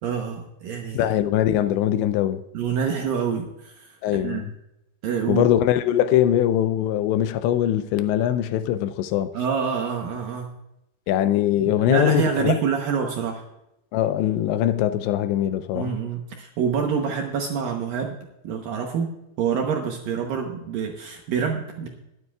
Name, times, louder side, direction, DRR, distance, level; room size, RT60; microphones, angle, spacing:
voice 1, 0.0-1.1 2.5-4.4 5.0-5.5 9.3-10.5 11.6-13.4 15.7-18.2 18.4-21.9, right 6 dB, 70° right, 2.2 m, -26 dB
voice 2, 0.9-2.4 4.0-4.5 5.3-9.3 11.1-12.6 13.9-16.0, left 11 dB, 85° left, 2.8 m, -22 dB
21.5 x 9.7 x 2.4 m
omnidirectional pair, 5.2 m